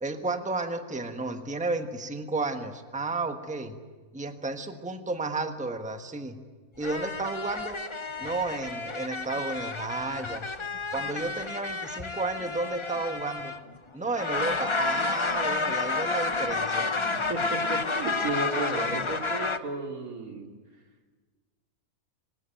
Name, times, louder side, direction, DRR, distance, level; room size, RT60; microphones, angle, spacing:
voice 1, 0.0-3.8 4.1-6.4 6.8-7.8 8.2-10.5 10.9-13.5 13.9-16.9, right 3 dB, 5° right, 6 dB, 1.3 m, -32 dB
sound 1, 6.8-13.8 14.1-19.6, left 3 dB, 25° left, 0.7 m, -30 dB
voice 2, 17.1-20.5, right 2 dB, 85° right, 2 dB, 3.2 m, -33 dB
25.0 x 20.0 x 9.2 m, 1.4 s
omnidirectional pair, 1.5 m